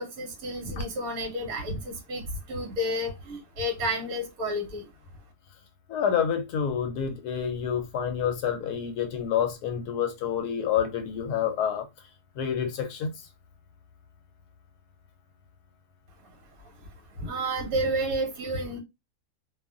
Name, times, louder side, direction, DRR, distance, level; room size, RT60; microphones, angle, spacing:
voice 1, 0.0-2.2 2.5-4.8 17.2-18.8, equal, 65° right, 1.3 m, -30 dB
voice 2, 5.9-11.9 12.4-13.1, left 8 dB, 75° left, 1.1 m, -28 dB
2.7 x 2.3 x 2.4 m
omnidirectional pair, 1.7 m